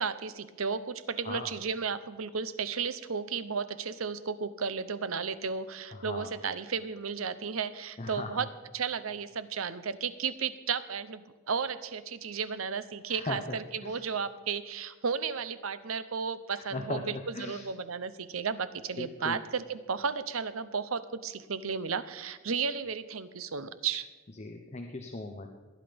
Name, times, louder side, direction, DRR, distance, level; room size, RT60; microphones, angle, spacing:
voice 1, 0.0-8.5 8.7-24.1, right 6 dB, 90° right, 14 dB, 0.8 m, -34 dB
voice 2, 5.9-6.4 8.0-8.5 13.1-13.4 13.8-14.0 16.5-17.7 19.0-19.4 24.4-25.5, left 2 dB, 35° left, 4 dB, 0.9 m, -38 dB
19.0 x 10.5 x 5.2 m, 1.3 s
head